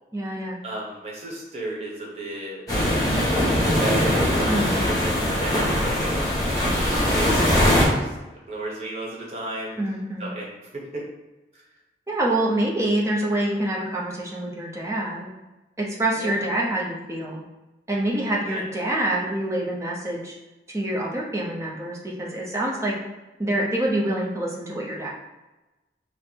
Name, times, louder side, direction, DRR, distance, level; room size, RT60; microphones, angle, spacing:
voice 1, 0.1-0.6 4.5-4.7 9.8-10.3 12.1-15.3 15.8-17.4 17.9-20.3 20.7-22.9 23.4-25.1, right 1 dB, 15° right, -3 dB, 0.7 m, -26 dB
voice 2, 0.6-2.6 3.3-8.1 8.5-9.8 10.2-10.5 10.7-11.1 11.5-11.6 16.1-16.4 18.4-18.6, right 1 dB, 35° right, -4 dB, 1.1 m, -34 dB
sound 1, 2.7-7.9, left 1 dB, 20° left, 1.3 m, -21 dB
4.4 x 2.1 x 4.4 m, 1.1 s
head